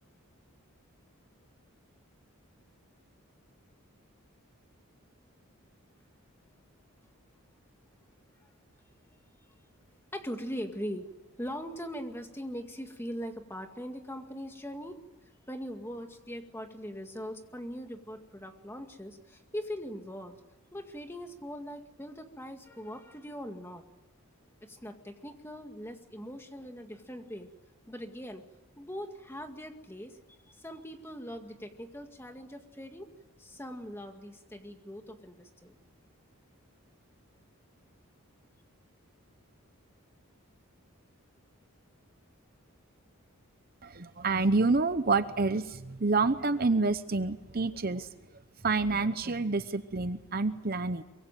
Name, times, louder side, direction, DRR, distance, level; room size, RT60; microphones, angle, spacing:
voice 1, 10.1-11.1 11.4-15.0 15.5-20.4 20.7-23.8 24.6-27.5 27.9-28.5 28.8-33.1 33.4-35.7, equal, 10° left, 5 dB, 2.0 m, -41 dB
voice 2, 43.8-48.1 48.6-51.0, right 3 dB, 40° right, 11 dB, 0.8 m, -28 dB
24.0 x 23.0 x 9.1 m, 1.0 s
head